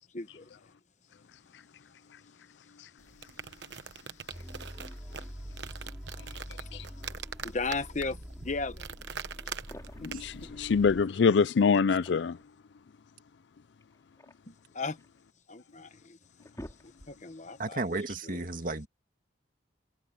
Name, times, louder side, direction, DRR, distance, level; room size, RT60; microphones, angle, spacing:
voice 1, 0.1-0.5 4.1-5.9 6.5-6.8 7.4-8.9 10.0-10.1 10.5-10.6 14.5-15.0 15.5-16.2 16.8-17.8 18.2-18.4, left 3 dB, 40° left, 1.1 m, -38 dB
sound 1, 3.0-10.5, right 6 dB, 70° right, 1.0 m, -43 dB
sound 2, 4.3-11.0, equal, ahead, 5.8 m, -45 dB
sound 3, 9.5-10.2 11.7-12.5 13.8-15.2 15.8-15.9 16.2-17.4, equal, 15° left, 4.6 m, -49 dB
voice 2, 10.0-12.4, left 5 dB, 70° left, 0.4 m, -24 dB
voice 3, 17.6-18.9, right 2 dB, 50° right, 2.0 m, -33 dB
head